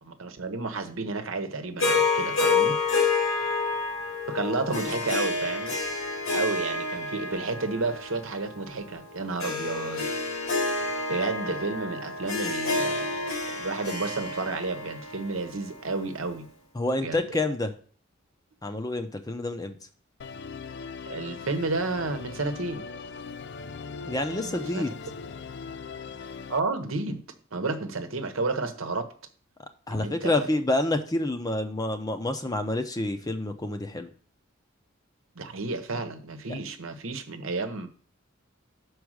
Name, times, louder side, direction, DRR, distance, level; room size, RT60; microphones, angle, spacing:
voice 1, 0.0-2.8 4.3-5.7 6.3-10.1 11.1-16.5 17.0-17.2 21.1-22.9 24.3-24.9 26.5-27.2 27.5-29.1 29.9-30.5 35.4-37.9, right 3 dB, 75° right, 1.0 m, -31 dB
Harp, 1.8-16.2, left 3 dB, 80° left, 2.0 m, -29 dB
voice 2, 16.7-17.7 18.6-19.8 24.1-24.9 29.9-34.1, left 2 dB, 20° left, 0.6 m, -28 dB
Musical instrument, 20.2-26.6, left 5 dB, 55° left, 0.4 m, -40 dB
6.2 x 4.8 x 6.3 m
head